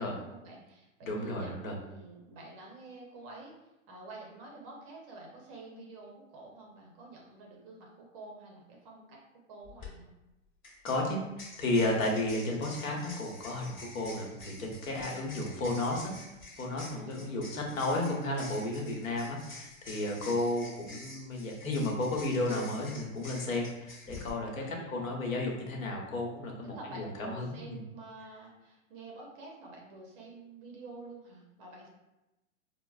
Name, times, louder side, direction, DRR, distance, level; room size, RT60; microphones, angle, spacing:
voice 1, 0.0-3.5 3.9-9.2 9.5-10.1 14.9-15.5 16.9-17.5 24.6-25.0 26.6-31.9, right 2 dB, 25° right, -1 dB, 0.5 m, -49 dB
voice 2, 1.0-1.8 10.8-11.2 11.6-16.1 16.6-27.8, left 2 dB, 80° left, 0 dB, 1.0 m, -33 dB
sound 1, 9.6-9.9 10.6-24.3, left 2 dB, 25° left, 1.0 m, -48 dB
4.4 x 2.0 x 2.3 m, 0.98 s
hypercardioid pair, 135°, 40 cm